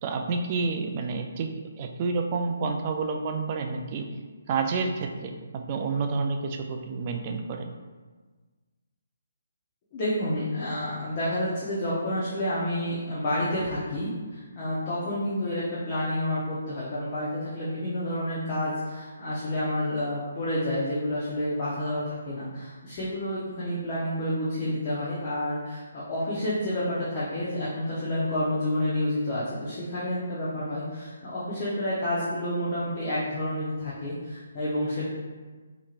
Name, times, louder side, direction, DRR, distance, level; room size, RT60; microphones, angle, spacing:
voice 1, 0.0-1.5 1.8-4.1 4.5-7.7, right 4 dB, 30° right, 4 dB, 0.3 m, -29 dB
voice 2, 9.9-35.1, left 1 dB, 30° left, -9 dB, 0.8 m, -29 dB
4.4 x 2.9 x 2.4 m, 1.4 s
hypercardioid pair, 165°, 0 cm